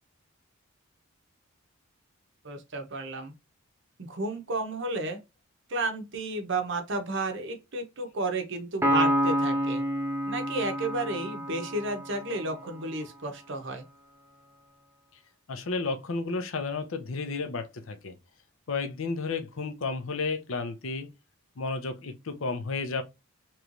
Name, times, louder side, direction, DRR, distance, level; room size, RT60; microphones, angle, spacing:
voice 1, 2.4-3.3 4.0-5.2 5.7-9.8 10.3-13.8, right 2 dB, 55° right, 0.8 m, -32 dB
Piano, 8.8-12.4, equal, 10° right, 0.4 m, -28 dB
voice 2, 15.5-18.2 18.7-21.1 21.6-23.0, left 4 dB, 60° left, 0.6 m, -32 dB
3.1 x 3.1 x 2.5 m
head